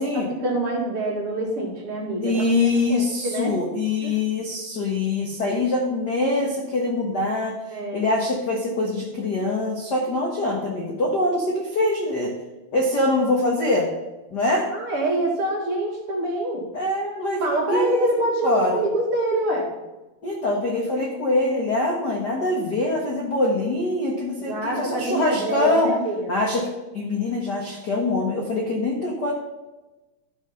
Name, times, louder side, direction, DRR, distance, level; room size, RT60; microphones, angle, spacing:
voice 1, 0.1-2.4 2.9-3.5 4.0-4.2 7.7-8.0 14.7-16.6 17.4-19.7 24.4-26.3, right 1 dB, 45° right, -3 dB, 2.6 m, -25 dB
voice 2, 2.2-7.6 7.9-12.3 12.7-13.9 14.3-14.7 16.7-18.1 18.4-18.8 20.2-25.9 26.3-26.7 26.9-29.3, left 2 dB, 60° left, -1 dB, 1.1 m, -24 dB
12.5 x 5.7 x 5.7 m, 1.1 s
omnidirectional pair, 4.2 m